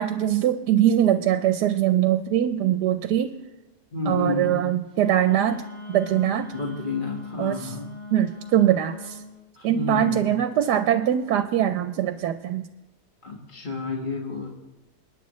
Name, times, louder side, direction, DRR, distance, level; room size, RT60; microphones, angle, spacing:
voice 1, 0.0-3.3 4.1-6.5 7.4-7.7 8.1-9.2 9.6-12.7, right 11 dB, 80° right, 9 dB, 1.2 m, -22 dB
voice 2, 3.9-4.6 6.5-7.9 9.5-10.4 13.2-14.7, left 3 dB, 30° left, -2 dB, 1.7 m, -30 dB
Wind instrument woodwind instrument, 4.9-9.3, left 3 dB, 50° left, 5.9 m, -40 dB
28.0 x 9.6 x 3.1 m, 1.0 s
omnidirectional pair, 1.8 m